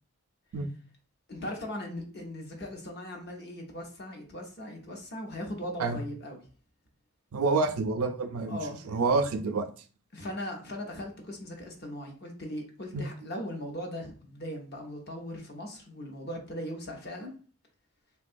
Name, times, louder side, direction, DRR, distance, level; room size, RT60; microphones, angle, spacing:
voice 1, 1.3-6.4 8.5-8.8 10.1-17.4, left 1 dB, 45° left, 2 dB, 0.7 m, -39 dB
voice 2, 7.3-8.6 8.8-9.7 12.9-13.1, right 3 dB, 80° right, 8 dB, 0.4 m, -27 dB
3.6 x 2.2 x 2.5 m, 0.39 s
head